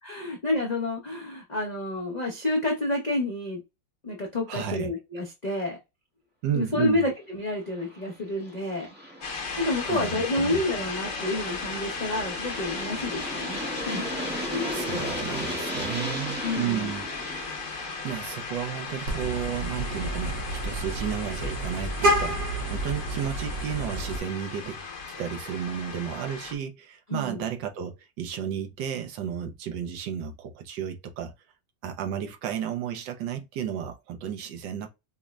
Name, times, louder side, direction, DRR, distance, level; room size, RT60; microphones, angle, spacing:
voice 1, 0.0-3.6 4.0-5.8 6.5-8.9 9.6-14.1 14.5-15.0 16.4-16.9 27.1-27.4, left 2 dB, 75° left, 0.4 m, -29 dB
voice 2, 4.5-4.9 6.4-7.1 9.9-10.6 14.7-17.1 17.8-24.9 25.2-31.3 31.8-34.9, right 9 dB, 80° right, 1.3 m, -33 dB
Aircraft, 7.6-20.4, equal, 15° right, 0.3 m, -37 dB
sound 1, 9.2-26.5, left 4 dB, 50° left, 1.0 m, -36 dB
Vehicle horn car horn honking, 19.1-24.2, right 1 dB, 55° right, 1.1 m, -29 dB
5.0 x 2.0 x 2.3 m
omnidirectional pair, 2.0 m